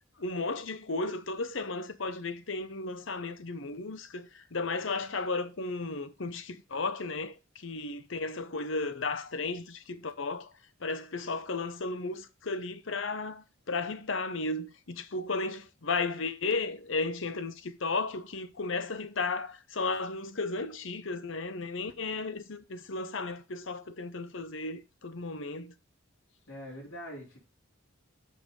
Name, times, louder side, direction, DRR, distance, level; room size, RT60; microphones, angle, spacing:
voice 1, 0.2-10.5 10.8-25.7, left 3 dB, 60° left, 0.9 m, -34 dB
voice 2, 26.5-27.4, equal, 85° left, 3.5 m, -43 dB
6.6 x 5.7 x 5.3 m
head